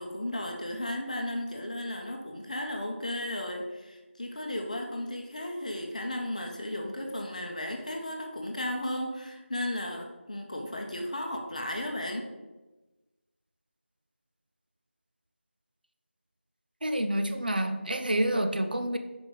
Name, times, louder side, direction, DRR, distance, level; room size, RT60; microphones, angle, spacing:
voice 1, 0.0-12.3, left 1 dB, 35° left, 2 dB, 0.8 m, -35 dB
voice 2, 16.8-19.0, right 1 dB, 45° right, 6 dB, 0.5 m, -28 dB
5.1 x 5.1 x 5.0 m, 1.2 s
figure-of-eight pair, 175°, 7 cm